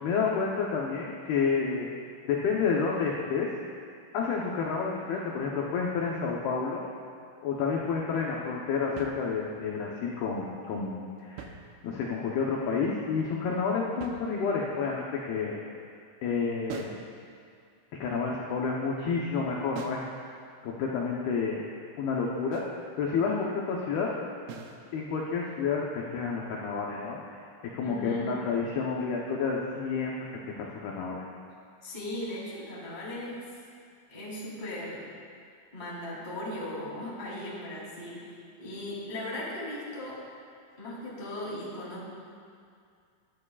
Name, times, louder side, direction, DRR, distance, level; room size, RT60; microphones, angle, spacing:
voice 1, 0.0-1.9 2.2-3.5 4.1-6.9 7.4-11.5 11.8-15.6 16.2-17.0 18.0-20.0 20.6-21.6 22.0-22.6 23.0-24.1 24.9-27.4 27.7-31.2, left 5 dB, 80° left, -2 dB, 2.2 m, -30 dB
sound 1, 9.0-9.7 11.2-12.2 14.0-14.8 16.7-17.1 19.8-20.2 22.5-22.8 24.5-24.9, right 6 dB, 80° right, 3.2 m, -43 dB
voice 2, 27.8-28.3 31.8-33.4 34.1-35.1 35.7-40.2 40.8-42.1, left 1 dB, 15° left, -6 dB, 2.0 m, -38 dB
19.5 x 12.5 x 2.4 m, 2.3 s
omnidirectional pair, 5.8 m